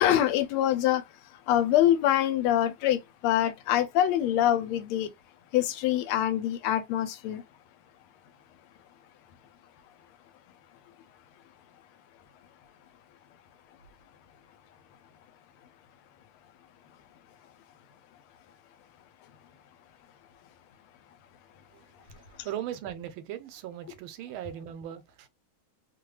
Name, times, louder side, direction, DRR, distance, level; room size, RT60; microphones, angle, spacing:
voice 1, 0.0-1.0 1.5-5.1 5.5-7.4 22.4-22.5, left 12 dB, 90° left, 1.4 m, -25 dB
voice 2, 22.1-25.3, right 11 dB, 80° right, 1.4 m, -38 dB
3.3 x 2.2 x 3.0 m
omnidirectional pair, 2.3 m